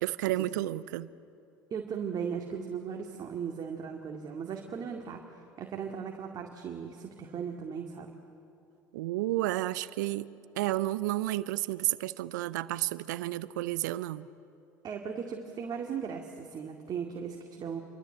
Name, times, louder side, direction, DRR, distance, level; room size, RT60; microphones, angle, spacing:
voice 1, 0.0-1.1 8.9-10.3 10.6-14.3, right 16 dB, 70° right, 0.7 m, -31 dB
voice 2, 1.7-5.2 5.6-8.1 14.8-17.8, right 7 dB, 40° right, 2.3 m, -37 dB
28.5 x 24.0 x 7.9 m
figure-of-eight pair, 65°, 10 cm